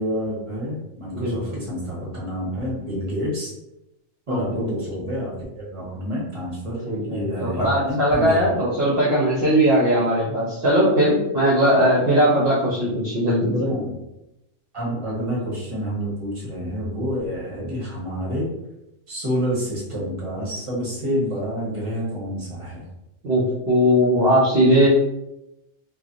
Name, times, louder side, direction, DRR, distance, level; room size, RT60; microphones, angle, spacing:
voice 1, 0.0-3.5 4.3-6.8 7.1-8.4 13.5-13.9 14.7-18.5 19.1-22.8, equal, 25° right, -5 dB, 1.1 m, -28 dB
voice 2, 1.1-1.6 4.3-4.7 6.8-13.5 23.2-24.9, equal, 55° right, -7 dB, 0.9 m, -19 dB
3.2 x 2.3 x 2.5 m, 0.90 s
omnidirectional pair, 1.3 m